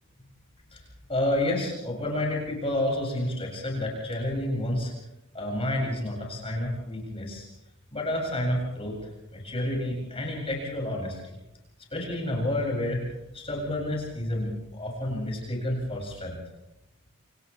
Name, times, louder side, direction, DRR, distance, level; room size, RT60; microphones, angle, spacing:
voice 1, 1.1-4.9 5.3-7.5 7.9-9.0 9.3-11.4 11.9-13.0 13.3-16.4, left 1 dB, 25° left, -1 dB, 7.5 m, -29 dB
29.0 x 28.0 x 3.6 m, 0.92 s
head